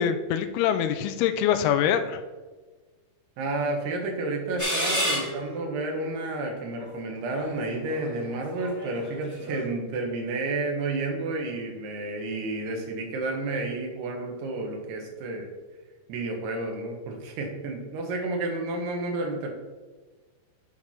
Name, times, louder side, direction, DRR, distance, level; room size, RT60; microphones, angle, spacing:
voice 1, 0.0-2.2, left 9 dB, 80° left, 9 dB, 2.5 m, -24 dB
voice 2, 3.4-15.5 16.1-19.5, right 2 dB, 80° right, 2 dB, 3.3 m, -31 dB
sound 1, 4.6-5.7 6.4-6.5 7.3-9.7, equal, 15° right, 0.6 m, -30 dB
8.8 x 4.6 x 5.8 m, 1.3 s
omnidirectional pair, 4.6 m